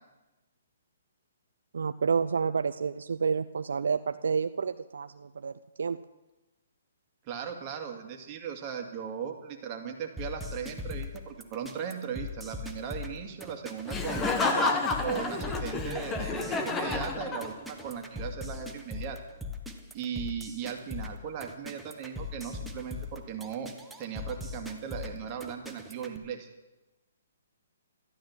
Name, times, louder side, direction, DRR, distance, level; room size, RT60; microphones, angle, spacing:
voice 1, 1.7-5.5 5.8-6.0, right 5 dB, 75° right, 10 dB, 0.5 m, -29 dB
voice 2, 7.2-14.3 15.0-19.2 19.9-26.5, right 7 dB, 30° right, 3 dB, 2.2 m, -38 dB
sound 1, 10.2-26.2, left 3 dB, 5° right, 1.2 m, -40 dB
Laughter, 13.9-17.8, left 3 dB, 15° left, 1.4 m, -30 dB
13.0 x 12.0 x 7.5 m, 1.1 s
hypercardioid pair, 145°, 0 cm